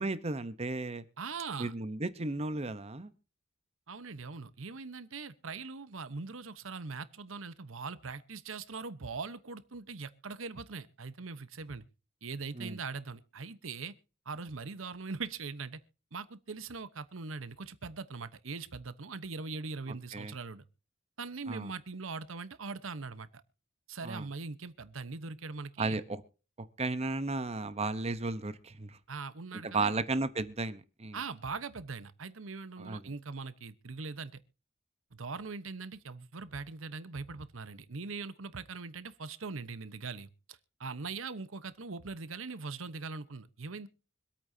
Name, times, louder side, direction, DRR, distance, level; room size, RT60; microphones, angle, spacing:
voice 1, 0.0-1.0 1.6-3.1 12.5-12.8 20.1-20.3 21.5-21.7 24.0-24.3 25.8-26.2 26.8-29.0 29.6-31.2 32.8-33.0, right 3 dB, 30° right, 12 dB, 0.9 m, -34 dB
voice 2, 1.2-1.7 3.9-11.8 12.2-13.9 14.3-15.8 16.1-20.6 21.2-23.4 23.9-26.0 29.1-30.0 31.1-34.3 35.1-43.9, right 4 dB, 75° right, 13 dB, 1.0 m, -41 dB
25.0 x 8.7 x 2.8 m, 0.35 s
head